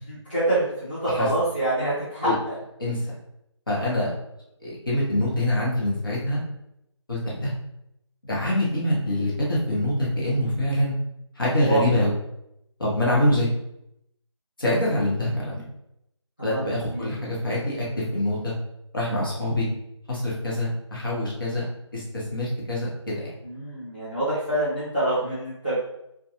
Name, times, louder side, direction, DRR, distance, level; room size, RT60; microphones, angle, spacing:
voice 1, 0.1-2.6 11.6-11.8 16.4-17.1 23.4-25.8, right 1 dB, 20° left, -13 dB, 0.5 m, -26 dB
voice 2, 3.7-4.1 4.6-6.4 7.1-7.5 8.2-11.0 11.4-12.1 12.8-13.5 14.6-15.6 16.4-17.9 18.1-18.5 18.9-19.7 20.1-21.6 21.9-23.3, left 1 dB, 45° left, -6 dB, 1.0 m, -25 dB
2.4 x 2.3 x 2.8 m, 0.80 s
figure-of-eight pair, 180°, 16 cm